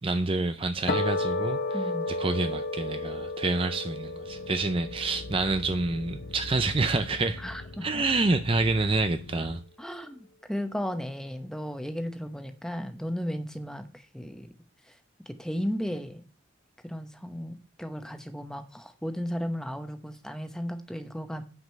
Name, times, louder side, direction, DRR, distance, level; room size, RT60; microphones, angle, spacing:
voice 1, 0.0-7.4 7.8-9.6, right 3 dB, 25° right, 0.5 m, -28 dB
sound 1, 0.9-7.4, left 2 dB, 45° left, 1.2 m, -33 dB
voice 2, 1.7-2.1 7.4-8.0 9.8-10.2 10.5-14.5 15.3-16.2 16.8-21.4, equal, 5° left, 0.9 m, -35 dB
sound 2, 4.2-9.6, left 2 dB, 65° left, 0.7 m, -43 dB
9.4 x 5.2 x 6.6 m
head